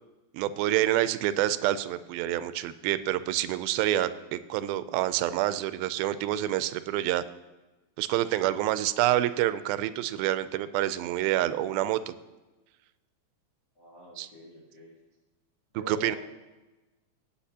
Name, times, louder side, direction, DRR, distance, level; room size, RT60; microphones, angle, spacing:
voice 1, 0.3-7.2 8.0-12.1 14.2-14.3 15.9-16.2, right 13 dB, 90° right, 13 dB, 2.4 m, -27 dB
voice 2, 13.7-14.9 15.7-16.1, right 1 dB, 55° left, -4 dB, 1.2 m, -45 dB
18.0 x 8.5 x 2.8 m, 1.1 s
omnidirectional pair, 4.2 m